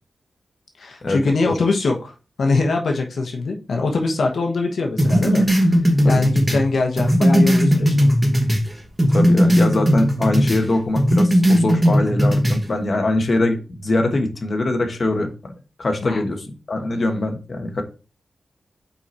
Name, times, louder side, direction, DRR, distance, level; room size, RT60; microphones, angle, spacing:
voice 1, 0.8-5.8 6.0-8.1 16.0-16.2, left 3 dB, 75° left, 2 dB, 1.1 m, -23 dB
sound 1, 5.0-8.7 9.0-10.6 10.9-12.6, equal, 15° right, 1.2 m, -17 dB
voice 2, 9.1-15.3 15.8-17.8, left 2 dB, 40° left, 4 dB, 1.2 m, -22 dB
5.4 x 4.8 x 4.3 m, 0.33 s
wide cardioid pair, 125°, 0 cm